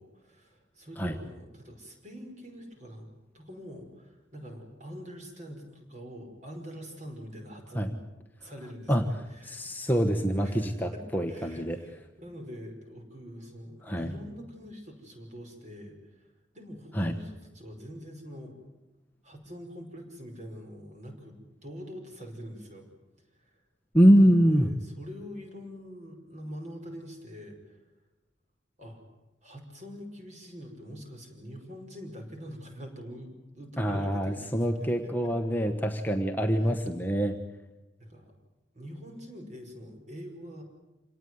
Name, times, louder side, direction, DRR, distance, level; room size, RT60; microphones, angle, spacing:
voice 1, 0.0-3.1 3.3-8.0 8.4-9.6 10.4-16.3 16.5-18.6 19.2-22.9 23.4-23.5 24.2-27.8 28.8-29.0 29.4-35.3 36.6-36.7 38.0-38.3 38.7-40.6, equal, 40° right, 4 dB, 5.6 m, -44 dB
voice 2, 9.4-11.8 13.8-14.1 16.9-17.1 23.9-24.7 33.8-37.4, equal, 10° left, 4 dB, 1.2 m, -24 dB
27.0 x 18.5 x 9.4 m, 1.0 s
head